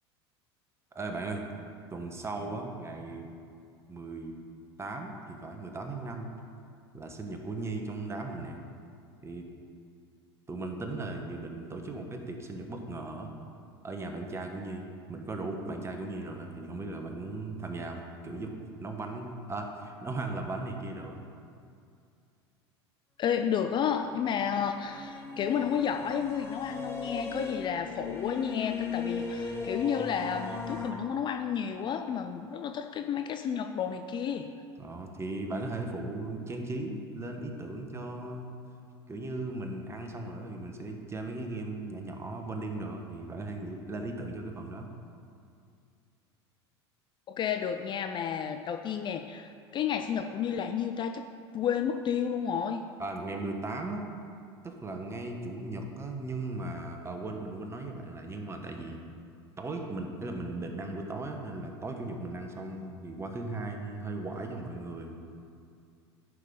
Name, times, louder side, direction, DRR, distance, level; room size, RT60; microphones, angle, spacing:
voice 1, 0.9-1.4 1.9-3.3 3.9-4.3 4.8-6.3 6.9-8.6 9.2-9.4 10.5-13.3 13.8-18.5 18.8-21.2 34.8-38.5 39.1-44.9 53.0-54.0 54.6-59.0 59.6-65.2, right 2 dB, 20° right, 3 dB, 1.1 m, -37 dB
voice 2, 23.2-34.5 47.3-51.2 51.5-52.8, left 8 dB, 35° left, 7 dB, 0.4 m, -31 dB
sound 1, 23.7-30.9, left 4 dB, 15° left, 1.3 m, -38 dB
10.5 x 5.7 x 3.8 m, 2.4 s
hypercardioid pair, 85°, 14 cm